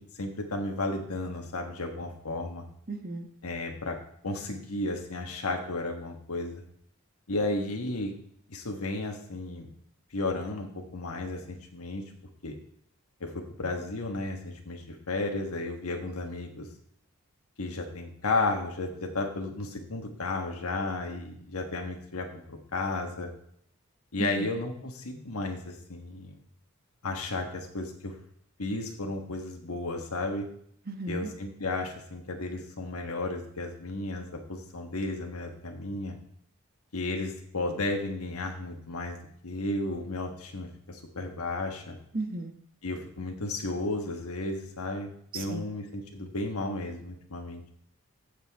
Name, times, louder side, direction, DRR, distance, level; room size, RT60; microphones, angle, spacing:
voice 1, 0.1-2.6 3.4-4.0 4.2-6.6 7.3-8.1 8.5-9.7 10.1-12.0 12.4-12.5 13.2-16.7 17.6-23.3 24.1-26.4 27.0-28.1 28.6-30.5 31.1-36.2 36.9-39.2 39.4-42.0 42.8-47.6, left 2 dB, 85° left, 2 dB, 1.4 m, -33 dB
voice 2, 2.9-3.3 24.2-24.5 30.9-31.3 42.1-42.5 45.3-45.6, right 3 dB, 45° right, 6 dB, 1.3 m, -34 dB
15.0 x 6.7 x 3.5 m, 0.68 s
head